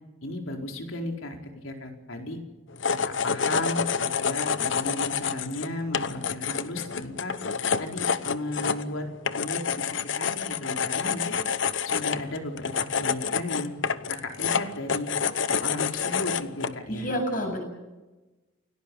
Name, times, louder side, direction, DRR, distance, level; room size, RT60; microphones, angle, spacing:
voice 1, 0.2-2.4 2.9-7.3 7.8-9.1 9.3-11.4 11.8-13.7 14.1-15.1 15.5-17.1, left 1 dB, 90° left, 3 dB, 4.4 m, -35 dB
sound 1, 2.7-16.8, left 6 dB, 70° left, 0.9 m, -28 dB
voice 2, 16.9-17.6, equal, 45° left, 3 dB, 7.6 m, -28 dB
29.0 x 17.5 x 7.0 m, 1.1 s
head